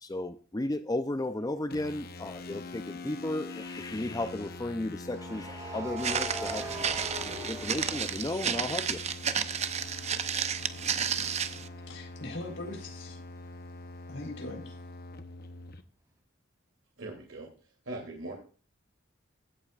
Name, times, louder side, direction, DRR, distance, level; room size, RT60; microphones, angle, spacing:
voice 1, 0.0-9.1, left 1 dB, 20° left, 10 dB, 0.6 m, -34 dB
sound 1, 1.7-15.8, left 2 dB, 50° left, 0.9 m, -44 dB
sound 2, 1.7-2.0 5.0-8.9 9.3-12.9, right 1 dB, 15° right, 3.1 m, -43 dB
Walk footsteps, 6.0-11.7, right 7 dB, 35° right, 0.7 m, -32 dB
voice 2, 11.9-13.2 14.1-14.8, left 2 dB, 65° left, 3 dB, 4.1 m, -41 dB
voice 3, 17.0-17.5 17.8-18.3, right 2 dB, 90° right, 0 dB, 2.9 m, -40 dB
15.5 x 8.6 x 2.5 m, 0.39 s
head